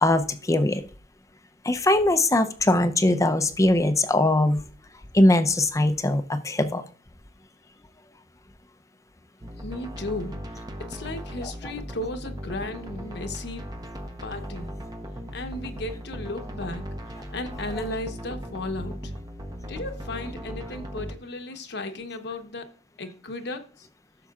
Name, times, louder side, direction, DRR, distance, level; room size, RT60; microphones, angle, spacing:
voice 1, 0.0-0.8 1.6-4.6 5.1-6.8, left 1 dB, 20° left, 9 dB, 0.6 m, -21 dB
sound 1, 9.4-21.2, equal, 20° right, 0.9 m, -37 dB
voice 2, 9.6-10.4 10.8-13.6 14.2-14.7 15.3-16.9 17.3-19.1 19.7-22.7 23.0-23.9, left 2 dB, 65° left, 7 dB, 1.0 m, -35 dB
15.0 x 6.8 x 2.4 m, 0.41 s
head